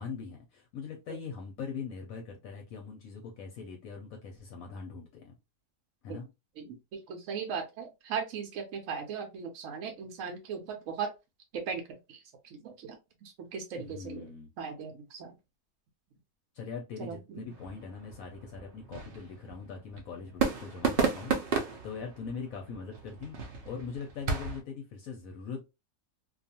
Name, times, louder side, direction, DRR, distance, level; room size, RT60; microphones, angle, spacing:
voice 1, 0.0-5.4 6.0-6.3 13.8-14.5 16.5-23.3 23.6-25.7, left 5 dB, 70° left, 0.9 m, -41 dB
voice 2, 7.1-11.1 11.5-11.8 12.1-12.2 12.5-13.0 13.2-14.3 14.6-15.3 17.0-17.4, right 6 dB, 65° right, 0.9 m, -38 dB
sound 1, 17.5-24.6, right 5 dB, 90° right, 0.4 m, -34 dB
2.5 x 2.3 x 2.7 m
omnidirectional pair, 1.7 m